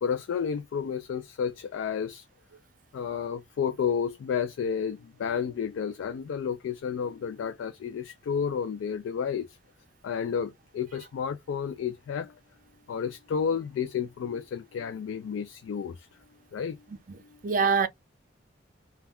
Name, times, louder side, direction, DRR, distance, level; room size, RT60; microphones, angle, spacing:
voice 1, 0.0-2.2 2.9-9.6 10.0-12.3 12.9-16.1 16.5-16.8, left 7 dB, 80° left, 0.3 m, -31 dB
voice 2, 16.9-17.9, right 5 dB, 45° right, 0.5 m, -26 dB
2.2 x 2.2 x 3.4 m
head